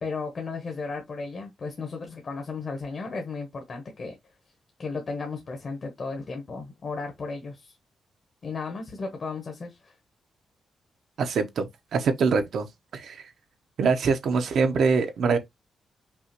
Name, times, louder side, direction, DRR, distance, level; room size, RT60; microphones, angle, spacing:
voice 1, 0.0-4.1 4.8-7.7 8.4-9.9, left 4 dB, 40° left, 1.0 m, -34 dB
voice 2, 11.2-12.7 12.9-13.3 13.8-15.4, right 5 dB, 65° right, 0.7 m, -24 dB
5.4 x 2.4 x 2.9 m
wide cardioid pair, 160°, 0 cm